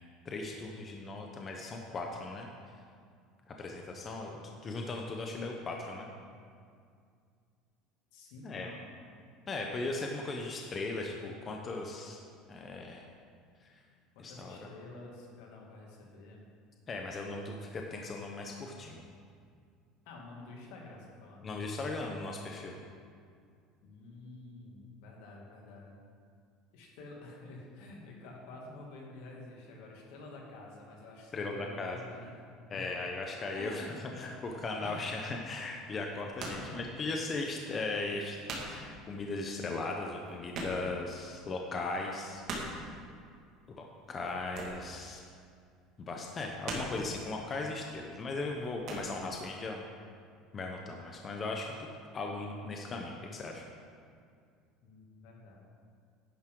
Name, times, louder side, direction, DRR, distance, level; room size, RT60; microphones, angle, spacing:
voice 1, 0.0-2.5 3.5-4.3 4.6-6.1 8.4-8.7 9.5-12.2 12.5-13.1 13.6-13.7 14.2-14.6 16.9-19.2 21.4-22.8 31.3-32.0 32.7-38.4 38.6-42.4 42.8-42.9 43.8-45.2 46.0-49.8 50.5-51.7 52.1-53.6, left 3 dB, 20° left, 1 dB, 0.7 m, -38 dB
voice 2, 8.1-8.8 14.1-16.4 20.0-21.5 23.8-25.9 26.7-32.4 32.7-32.9 33.5-34.4 34.8-35.2 36.4-36.8 54.8-55.7, left 2 dB, 75° left, -1 dB, 2.3 m, -49 dB
sound 1, 34.5-34.8 36.0-36.8 37.1-37.2 37.8-37.9 38.1-38.9 39.2-39.3 39.5-39.6 39.9-41.1 41.5-41.6 42.0-42.9 44.2-45.0 45.3-45.7 46.2-47.2 47.8-48.1 48.4-49.1, right 2 dB, 40° right, 1.9 m, -41 dB
10.5 x 10.5 x 3.8 m, 2.2 s
cardioid pair, 170°, 0 cm